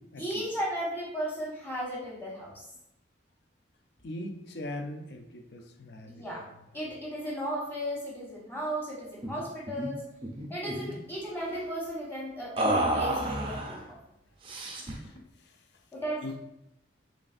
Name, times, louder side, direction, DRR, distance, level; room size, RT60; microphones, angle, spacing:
voice 1, 0.2-2.5 6.0-6.4 6.7-10.0 10.5-14.0 15.9-16.3, equal, 10° left, -6 dB, 1.1 m, -35 dB
voice 2, 4.0-6.1 16.2-16.3, left 1 dB, 55° left, 5 dB, 0.4 m, -39 dB
sound 1, 9.2-9.4 9.7-9.9 10.2-11.0 12.6-13.8 14.4-15.1, right 1 dB, 25° right, 0.4 m, -30 dB
3.9 x 3.3 x 2.4 m, 0.83 s
head